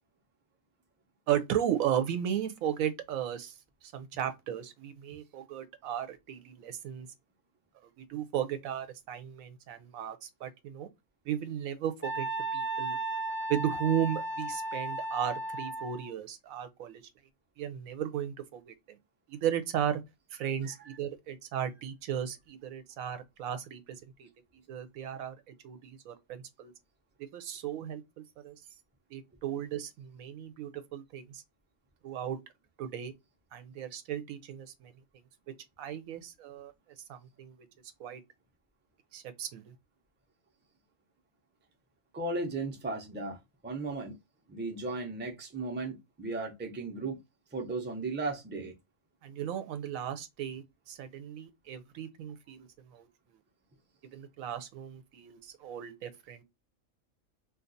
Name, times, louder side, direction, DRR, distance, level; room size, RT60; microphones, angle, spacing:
voice 1, 1.3-7.1 8.0-10.9 11.3-12.3 12.5-13.0 13.5-17.0 17.6-19.0 19.3-20.0 20.3-24.3 24.7-25.3 25.6-26.7 27.2-28.6 29.1-31.4 32.0-32.4 32.8-33.1 33.5-34.9 35.8-36.7 37.1-37.6 38.0-38.2 39.1-39.7 49.2-53.1 54.1-56.4, right 10 dB, 85° right, 1.1 m, -35 dB
Wind instrument woodwind instrument, 12.0-16.1, right 2 dB, 40° left, 0.6 m, -35 dB
voice 2, 42.1-44.2 44.5-47.2 47.5-48.7, right 3 dB, 15° right, 0.5 m, -36 dB
2.6 x 2.4 x 3.9 m
omnidirectional pair, 1.4 m